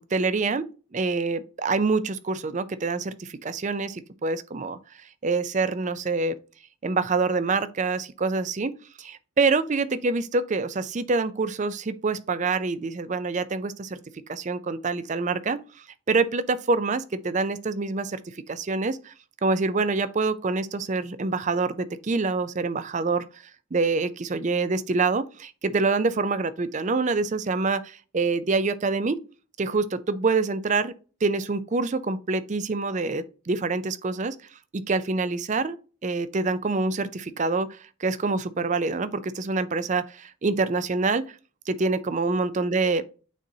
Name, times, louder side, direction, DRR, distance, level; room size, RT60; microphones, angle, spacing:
voice 1, 0.1-4.8 5.2-6.4 6.8-15.6 16.1-19.1 19.4-23.2 23.7-29.2 29.6-30.9 31.2-34.4 34.7-35.8 36.0-41.3 41.7-43.0, right 3 dB, 35° right, 0.4 m, -26 dB
9.1 x 4.0 x 2.7 m
head